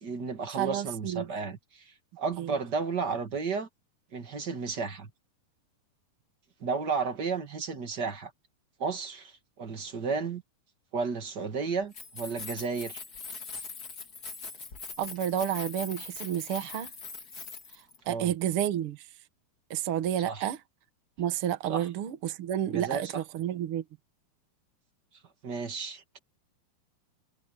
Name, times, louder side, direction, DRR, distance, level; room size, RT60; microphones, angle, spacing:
voice 1, 0.0-3.7 4.1-5.1 6.6-8.3 8.8-10.4 10.9-13.0 18.0-18.3 20.2-20.5 21.7-21.8 22.7-23.2 25.4-26.2, right 5 dB, 45° right, 1.4 m, -33 dB
voice 2, 0.6-1.3 2.4-2.5 15.0-16.9 18.1-19.0 19.7-20.6 21.2-23.8, right 10 dB, 85° right, 1.2 m, -30 dB
Keys jangling, 11.8-18.0, left 4 dB, 35° left, 1.7 m, -42 dB
omnidirectional pair, 4.7 m